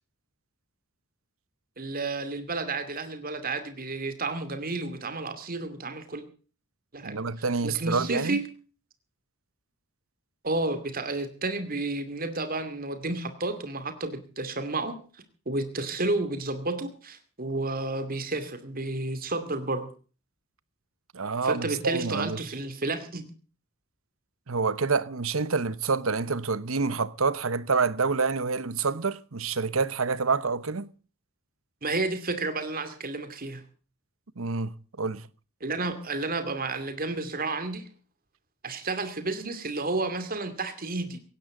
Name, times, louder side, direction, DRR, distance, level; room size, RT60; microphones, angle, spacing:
voice 1, 1.8-6.2 6.9-7.2 7.6-8.5 10.4-15.0 15.5-19.9 21.4-23.2 31.8-33.6 35.6-37.9 38.6-41.2, right 2 dB, 45° right, 2.5 m, -31 dB
voice 2, 7.0-8.4 21.1-22.4 24.5-30.9 34.4-35.3, right 4 dB, 85° right, 1.0 m, -27 dB
19.0 x 17.0 x 3.8 m
head